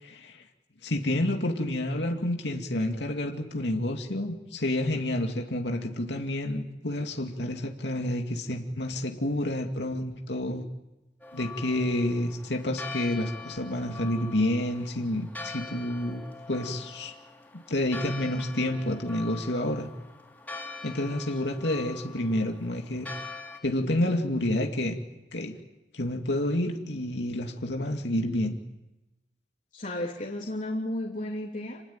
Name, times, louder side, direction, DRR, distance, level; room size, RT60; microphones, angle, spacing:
voice 1, 0.0-0.4 0.8-10.6 11.3-17.1 17.7-19.9 20.8-23.1 23.6-25.0 25.3-25.5 25.9-28.6, left 1 dB, 80° left, 3 dB, 2.4 m, -29 dB
Church bell, 11.2-23.6, left 4 dB, 10° left, 4.3 m, -43 dB
voice 2, 29.7-31.8, left 1 dB, 45° left, -2 dB, 2.9 m, -33 dB
27.5 x 19.5 x 8.8 m, 0.97 s
head